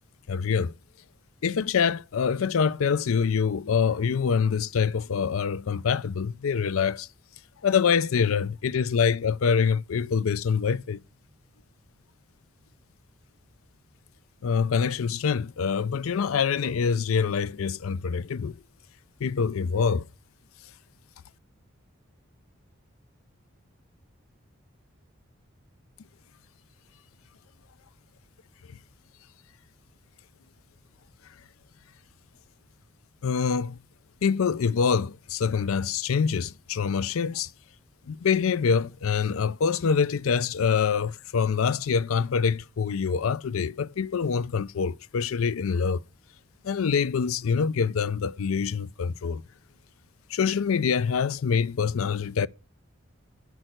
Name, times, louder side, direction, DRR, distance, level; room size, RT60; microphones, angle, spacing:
voice 1, 0.3-0.7 1.4-7.1 7.6-11.0 14.4-18.5 19.2-20.1 33.2-33.8 34.2-37.5 38.1-46.0 46.6-49.4 50.3-52.5, left 6 dB, 85° left, 0.5 m, -25 dB
9.0 x 6.2 x 7.6 m
head